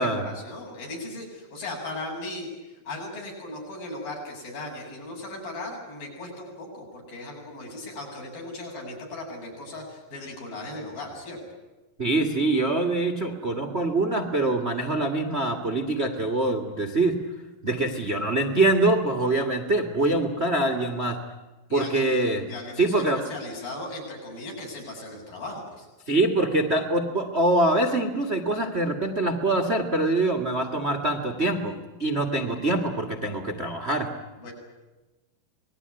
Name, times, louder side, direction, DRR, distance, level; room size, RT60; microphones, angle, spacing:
voice 1, 0.0-11.4 21.7-22.1 22.5-25.9 34.4-34.5, left 2 dB, 60° left, 0 dB, 9.1 m, -37 dB
voice 2, 12.0-17.2 17.6-21.2 21.7-22.4 22.8-23.2 26.1-34.1, right 2 dB, 35° right, 4 dB, 1.1 m, -24 dB
27.0 x 20.5 x 9.7 m, 1.1 s
omnidirectional pair, 4.4 m